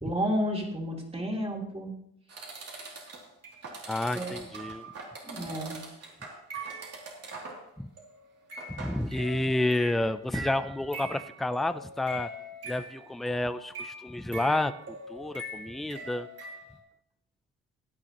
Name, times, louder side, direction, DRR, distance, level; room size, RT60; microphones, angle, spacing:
voice 1, 0.0-1.9 4.1-4.4 5.2-5.8, equal, 20° right, -1 dB, 2.9 m, -31 dB
sound 1, 2.3-7.7 8.0-8.2 8.5-16.8, right 2 dB, 55° right, 2.8 m, -42 dB
voice 2, 3.9-4.8 7.8-7.9 8.8-12.3 12.6-16.3, left 1 dB, ahead, 12 dB, 0.5 m, -30 dB
16.0 x 9.8 x 3.0 m, 0.75 s
cardioid pair, 90°, 30 cm